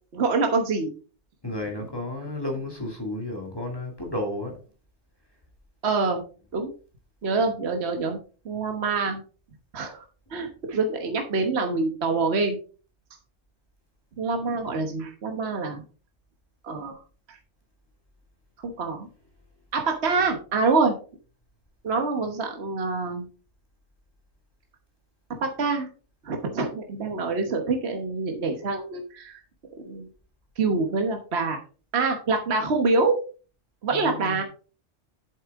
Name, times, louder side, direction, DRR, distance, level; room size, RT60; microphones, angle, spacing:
voice 1, 0.1-0.9 5.8-6.2 6.5-6.7 7.2-8.2 8.4-9.2 9.7-10.0 10.3-12.6 14.2-15.8 16.6-17.0 17.3-17.4 18.6-19.1 19.7-20.9 21.8-23.3 25.4-25.9 26.2-29.4 29.8-30.1 30.6-31.6 31.9-33.2 33.8-34.4, right 3 dB, 65° right, 1.4 m, -25 dB
voice 2, 1.4-4.6 33.9-34.4, left 1 dB, 20° left, 2.3 m, -32 dB
8.8 x 7.3 x 3.6 m
omnidirectional pair, 1.2 m